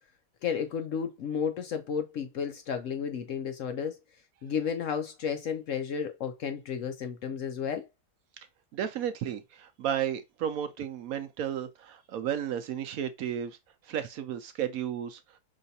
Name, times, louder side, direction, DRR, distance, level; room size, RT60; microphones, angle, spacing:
voice 1, 0.4-4.0 4.4-7.9, left 7 dB, 65° left, 0.9 m, -32 dB
voice 2, 8.7-13.6 13.9-15.2, right 9 dB, 70° right, 0.9 m, -33 dB
5.5 x 3.2 x 2.6 m
omnidirectional pair, 1.7 m